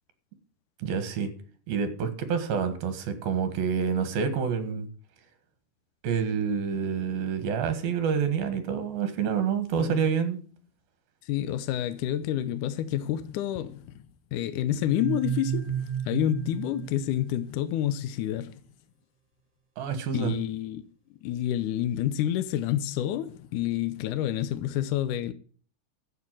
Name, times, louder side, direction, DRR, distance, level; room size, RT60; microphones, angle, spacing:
voice 1, 0.8-1.3 1.7-4.9 6.0-10.4 19.8-20.3, right 6 dB, 75° right, 3.5 m, -28 dB
voice 2, 11.2-14.0 14.3-18.6 20.1-20.8 21.2-25.3, left 11 dB, 75° left, 1.9 m, -29 dB
sound 1, 14.9-17.7, right 8 dB, 50° right, 2.3 m, -32 dB
11.5 x 8.3 x 7.6 m
omnidirectional pair, 4.4 m